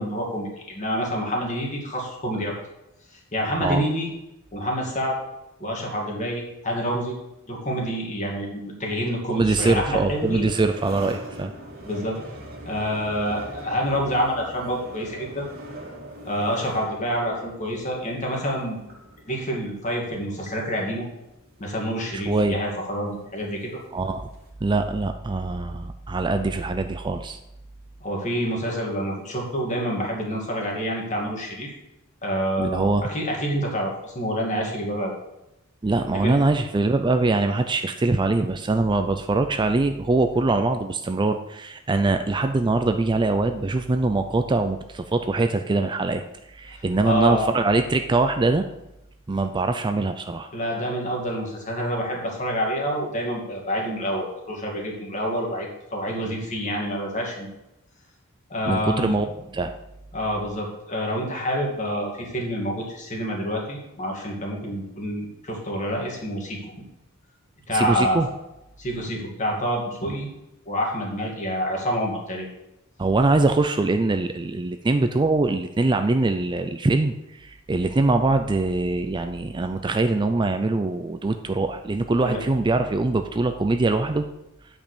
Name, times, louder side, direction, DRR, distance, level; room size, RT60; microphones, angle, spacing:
voice 1, 0.0-2.5 3.1-4.1 4.5-5.2 5.6-7.1 7.5-10.5 11.8-12.2 12.6-15.5 16.2-18.8 19.3-21.0 21.6-23.8 28.0-31.7 32.2-35.1 36.1-36.4 46.7-47.5 50.5-57.5 58.5-59.2 60.1-66.6 67.7-68.3 68.8-70.3 70.7-72.5 82.2-82.4, equal, 35° left, -1 dB, 2.5 m, -27 dB
voice 2, 9.3-11.5 22.1-22.6 23.9-24.3 24.6-27.4 32.6-33.1 35.8-48.7 49.3-50.5 58.7-59.7 67.7-68.3 73.0-84.2, right 2 dB, 20° right, 7 dB, 0.4 m, -23 dB
sound 1, 9.6-24.5, equal, 45° right, 2.3 m, -43 dB
8.9 x 5.4 x 6.7 m, 0.90 s
head